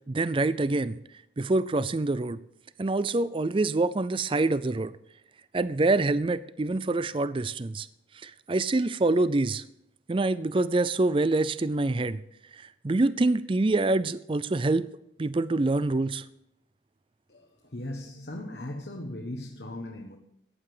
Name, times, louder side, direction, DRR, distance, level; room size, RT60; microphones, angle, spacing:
voice 1, 0.1-1.0 1.4-2.4 2.8-4.9 5.5-7.9 8.2-9.6 10.1-12.2 12.8-14.9 15.2-16.2, right 2 dB, 25° right, 16 dB, 0.4 m, -25 dB
voice 2, 17.7-20.2, left 1 dB, 55° left, 2 dB, 1.1 m, -38 dB
14.5 x 9.8 x 5.0 m, 0.81 s
head